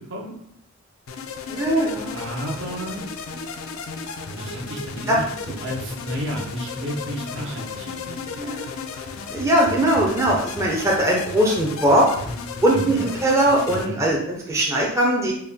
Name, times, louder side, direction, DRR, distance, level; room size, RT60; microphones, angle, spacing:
sound 1, 1.1-13.9, left 4 dB, 70° left, 0.4 m, -34 dB
voice 1, 1.5-2.2 3.3-3.4 5.1-5.2 8.3-8.6 9.3-12.3 12.6-15.3, right 1 dB, 15° right, -3 dB, 0.5 m, -20 dB
voice 2, 2.1-3.1 4.4-5.3 5.6-8.4 12.7-13.0 13.7-14.0, equal, 55° right, 0 dB, 0.7 m, -31 dB
4.3 x 2.1 x 3.5 m, 0.71 s
head